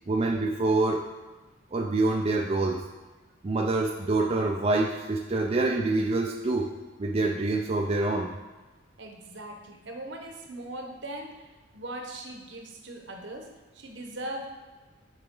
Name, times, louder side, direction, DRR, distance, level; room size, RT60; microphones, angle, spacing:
voice 1, 0.1-1.0 1.7-2.8 3.4-6.7 7.0-8.4, right 2 dB, 30° right, 1 dB, 0.4 m, -26 dB
voice 2, 9.0-11.5 11.7-14.5, right 1 dB, 65° right, 2 dB, 1.1 m, -40 dB
9.0 x 4.9 x 3.8 m, 1.3 s
head